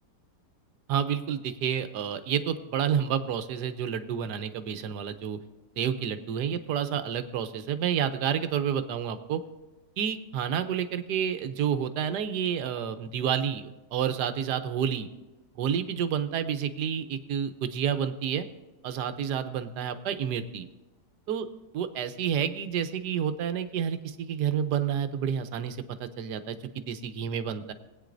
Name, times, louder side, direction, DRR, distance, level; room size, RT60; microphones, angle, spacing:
voice 1, 0.9-5.4 5.8-9.4 10.0-15.1 15.6-18.5 18.8-20.7 21.3-21.5 21.7-27.7, right 8 dB, 85° right, 10 dB, 1.4 m, -29 dB
19.5 x 9.0 x 2.6 m, 1.1 s
omnidirectional pair, 1.7 m